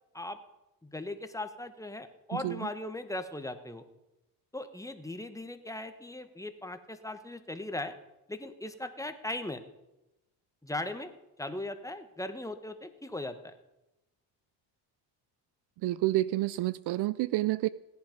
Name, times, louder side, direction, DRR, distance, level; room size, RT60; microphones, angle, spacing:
voice 1, 0.8-3.8 4.5-7.9 8.3-9.6 10.6-11.1 11.4-13.5, left 2 dB, 5° left, 8 dB, 1.2 m, -38 dB
voice 2, 15.8-17.7, right 17 dB, 60° right, 19 dB, 0.5 m, -29 dB
17.5 x 10.5 x 5.2 m, 0.95 s
cardioid pair, 100°, 46 cm